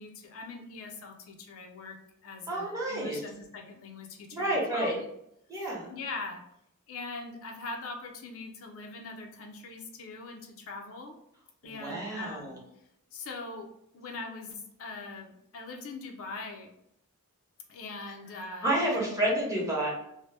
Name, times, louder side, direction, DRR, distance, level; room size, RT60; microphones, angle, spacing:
voice 1, 0.0-5.1 5.9-6.4 6.9-11.1 11.6-12.6 13.1-16.7 17.7-19.2, left 3 dB, 65° left, 3 dB, 0.5 m, -42 dB
voice 2, 2.5-3.2 4.3-5.0 5.5-5.9 11.6-12.6 18.6-19.9, right 1 dB, 15° right, -4 dB, 0.8 m, -30 dB
2.7 x 2.0 x 3.2 m, 0.77 s
head